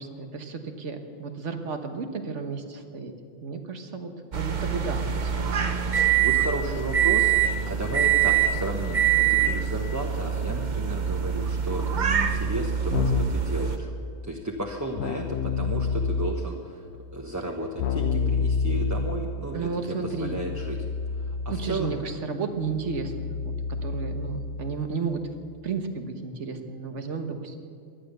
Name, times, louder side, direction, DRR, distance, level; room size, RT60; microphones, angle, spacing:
voice 1, 0.0-3.1 3.4-5.3 6.7-6.8 19.5-20.4 21.5-23.5 23.8-25.2 25.6-27.6, right 4 dB, 65° right, 6 dB, 1.6 m, -33 dB
sound 1, 4.3-13.8, right 9 dB, 40° right, 0.9 m, -24 dB
voice 2, 6.2-7.3 7.7-13.9 14.2-16.8 17.1-19.7 20.0-20.8 21.2-22.0, right 1 dB, 15° right, 0 dB, 1.0 m, -33 dB
Keyboard (musical), 12.9-13.5 15.0-16.6 17.8-24.8, left 4 dB, 60° left, 0.9 m, -29 dB
18.5 x 11.5 x 6.8 m, 2.4 s
omnidirectional pair, 1.3 m